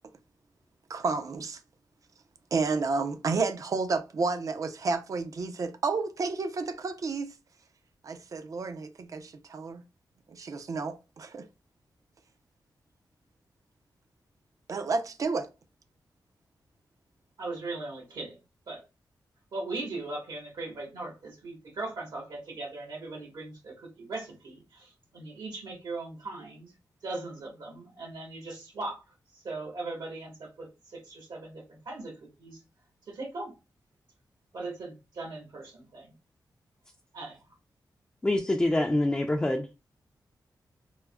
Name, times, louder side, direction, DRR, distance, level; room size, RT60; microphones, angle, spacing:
voice 1, 0.9-1.6 2.5-7.3 8.0-9.8 10.3-11.5 14.7-15.5, right 4 dB, 50° right, 0.5 m, -31 dB
voice 2, 17.4-18.4 18.7-18.8 19.5-26.7 27.0-29.0 29.3-32.6 33.1-33.5 34.5-36.1 37.1-37.4, right 2 dB, 75° right, 1.3 m, -39 dB
voice 3, 38.2-39.7, left 1 dB, 15° left, 0.4 m, -25 dB
4.5 x 2.0 x 2.2 m
wide cardioid pair, 120°, 7 cm